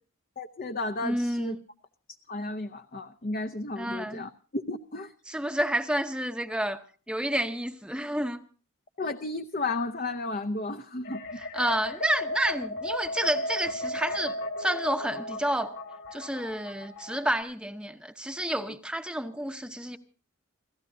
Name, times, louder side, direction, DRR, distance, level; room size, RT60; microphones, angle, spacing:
voice 1, 0.4-1.6 2.3-5.1 9.0-11.4, left 2 dB, 40° left, 0.7 m, -33 dB
voice 2, 1.0-1.6 3.8-4.2 5.3-8.4 11.4-15.7 16.1-20.0, right 1 dB, 5° right, 0.8 m, -30 dB
sound 1, 11.0-17.4, left 1 dB, 60° left, 2.9 m, -35 dB
29.0 x 15.0 x 2.7 m
head